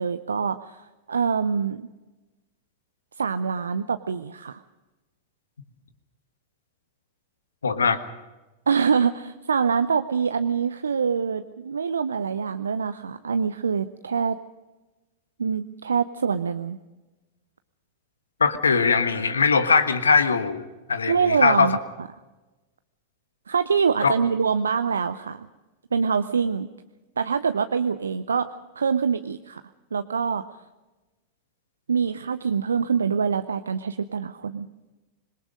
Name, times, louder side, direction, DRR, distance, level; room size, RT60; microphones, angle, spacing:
voice 1, 0.0-1.9 3.2-4.6 8.7-14.4 15.4-16.8 21.1-22.1 23.5-25.5 25.9-26.7 27.2-28.5 28.8-29.6 29.9-30.4 31.9-34.7, right 6 dB, 70° right, 11 dB, 0.6 m, -25 dB
voice 2, 7.6-8.0 18.4-21.8 24.0-24.1, left 5 dB, 75° left, 11 dB, 1.5 m, -21 dB
26.0 x 22.0 x 5.1 m, 1.1 s
figure-of-eight pair, 90°, 0 cm